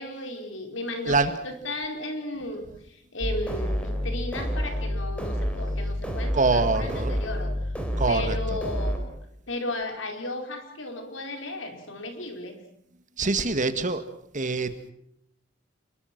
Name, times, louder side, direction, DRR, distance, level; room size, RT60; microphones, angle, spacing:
voice 1, 0.0-7.7 8.1-9.1 9.5-12.6, left 1 dB, 80° left, 5 dB, 4.6 m, -35 dB
sound 1, 3.2-9.0, equal, 5° left, 4.0 m, -29 dB
voice 2, 6.3-7.2 8.0-8.6 13.2-14.1 14.3-14.9, right 3 dB, 40° right, 10 dB, 1.9 m, -25 dB
29.0 x 22.0 x 6.1 m, 0.73 s
head